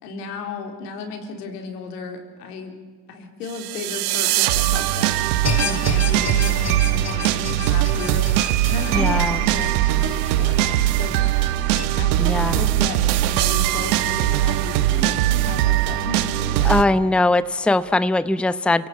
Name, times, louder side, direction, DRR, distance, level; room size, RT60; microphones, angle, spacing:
voice 1, 0.0-2.7 3.1-5.2 5.5-8.3 8.7-11.2 11.8-17.0, left 4 dB, 85° left, 4 dB, 3.8 m, -34 dB
sound 1, 3.5-16.8, right 14 dB, 80° right, 1.2 m, -21 dB
sound 2, 5.4-11.8, left 5 dB, 35° left, 2.5 m, -31 dB
voice 2, 8.9-9.4 12.2-12.6 16.6-18.9, left 2 dB, ahead, 14 dB, 0.9 m, -20 dB
29.0 x 17.0 x 8.7 m, 1.5 s
hypercardioid pair, 65°, 46 cm